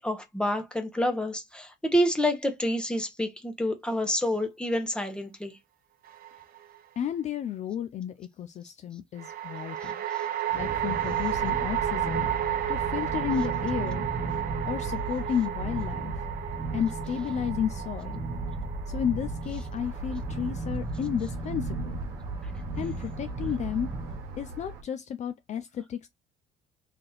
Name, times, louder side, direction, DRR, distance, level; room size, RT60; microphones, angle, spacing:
voice 1, 0.0-5.6 9.8-10.3, equal, 5° left, 1.0 m, -28 dB
sound 1, 6.1-6.8 9.2-20.5, right 11 dB, 60° right, 0.8 m, -32 dB
voice 2, 7.0-10.0 10.5-12.3 12.7-14.1 14.7-16.2 16.7-18.2 18.9-22.0 22.8-23.9 24.4-26.1, left 9 dB, 45° left, 0.4 m, -32 dB
sound 2, 10.5-24.2, right 2 dB, 20° right, 1.0 m, -35 dB
sound 3, 19.8-24.8, right 2 dB, 85° right, 1.0 m, -42 dB
3.3 x 2.7 x 3.9 m
cardioid pair, 110°, 17 cm